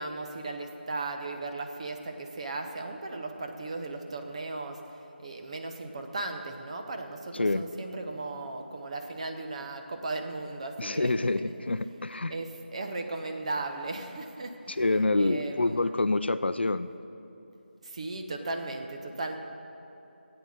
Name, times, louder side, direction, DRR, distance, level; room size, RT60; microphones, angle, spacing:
voice 1, 0.0-4.8 5.2-11.3 12.1-15.8 17.8-19.4, right 2 dB, 35° right, 4 dB, 0.9 m, -36 dB
voice 2, 10.8-12.3 14.7-16.9, left 2 dB, 75° left, 13 dB, 0.5 m, -27 dB
13.0 x 8.9 x 6.4 m, 2.9 s
figure-of-eight pair, 165°, 6 cm